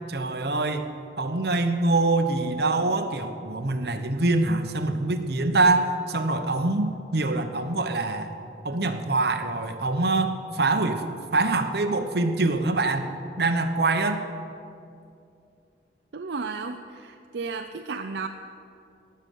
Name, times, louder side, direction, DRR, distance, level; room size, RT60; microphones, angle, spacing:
voice 1, 0.1-0.9 1.2-8.3 8.6-13.1 13.4-14.2, right 2 dB, 65° right, 6 dB, 1.0 m, -24 dB
voice 2, 16.1-18.3, right 4 dB, 80° right, 6 dB, 0.6 m, -33 dB
18.0 x 6.8 x 9.2 m, 2.5 s
head